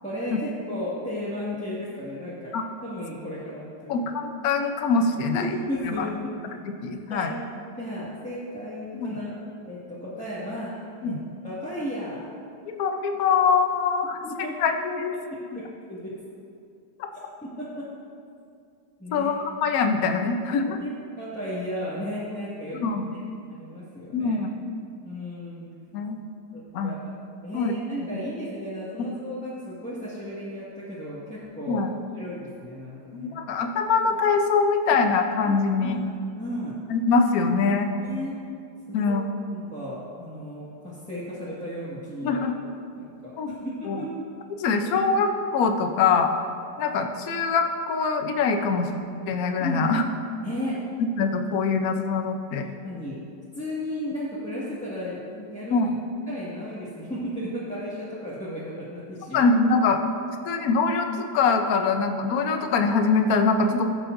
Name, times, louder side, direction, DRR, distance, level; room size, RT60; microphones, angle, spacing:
voice 1, 0.0-2.6 2.8-4.0 5.3-6.3 7.1-7.3 7.8-9.4 9.6-10.7 11.0-11.1 11.4-12.2 14.2-14.6 15.3-15.6 15.9-16.1 17.4-17.8 19.0-19.3 20.7-20.9 21.2-22.8 23.1-23.2 23.5-24.4 25.0-25.7 26.5-27.0 27.4-31.8 32.1-33.3 35.4-36.0 36.4-36.8 38.0-38.3 38.9-39.1 39.5-42.4 42.9-43.5 44.0-44.3 49.6-49.9 50.4-50.7 52.8-53.2 53.5-55.9 56.3-59.4, equal, 5° left, -12 dB, 1.5 m, -34 dB
voice 2, 3.9-5.5 5.8-6.1 6.8-7.3 9.0-9.1 11.0-11.2 12.7-14.2 14.6-15.1 19.1-20.8 22.7-23.2 24.1-24.6 25.9-26.2 26.7-26.9 27.5-27.7 29.0-29.1 31.7-31.9 33.1-36.0 36.9-37.9 38.9-39.2 42.2-42.5 43.4-44.0 44.5-46.3 46.8-48.9 49.3-50.0 51.2-52.7 55.7-56.0 59.3-60.0 60.5-63.9, left 4 dB, 60° left, 5 dB, 1.1 m, -23 dB
16.5 x 7.4 x 2.6 m, 2.4 s
omnidirectional pair, 2.0 m